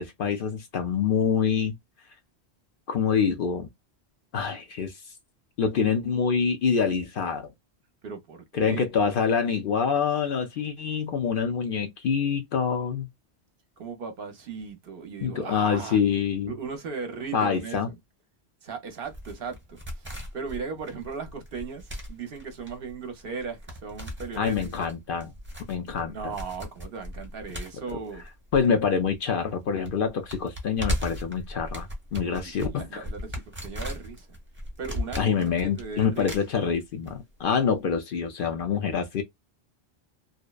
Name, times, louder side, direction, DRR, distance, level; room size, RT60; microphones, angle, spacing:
voice 1, 0.0-1.8 2.9-3.7 4.3-5.0 5.6-7.5 8.5-13.1 15.2-16.5 17.3-17.9 24.4-25.3 25.7-26.3 28.5-33.0 35.2-39.2, left 6 dB, 60° left, 0.6 m, -26 dB
voice 2, 8.0-8.9 13.8-16.0 16.5-18.0 18.6-24.7 26.0-28.3 32.4-34.4 34.8-36.3, right 5 dB, 60° right, 0.8 m, -37 dB
sound 1, 19.1-29.2 29.4-29.5 29.8-37.1 37.4-37.5, equal, 10° right, 0.8 m, -37 dB
2.7 x 2.1 x 2.2 m
omnidirectional pair, 1.1 m